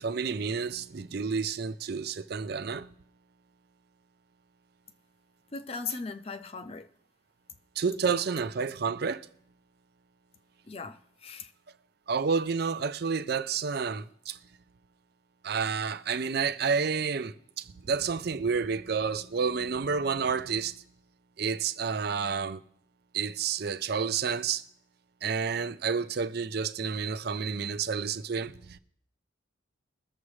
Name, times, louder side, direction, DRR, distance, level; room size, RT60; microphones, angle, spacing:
voice 1, 0.0-2.9 7.8-9.3 12.1-14.4 15.4-20.8 21.4-22.6 23.1-24.6 25.2-28.8, right 5 dB, 50° right, 0.5 m, -30 dB
voice 2, 5.5-6.9 10.7-11.5, left 4 dB, 30° left, 0.5 m, -38 dB
21.5 x 7.2 x 3.2 m
head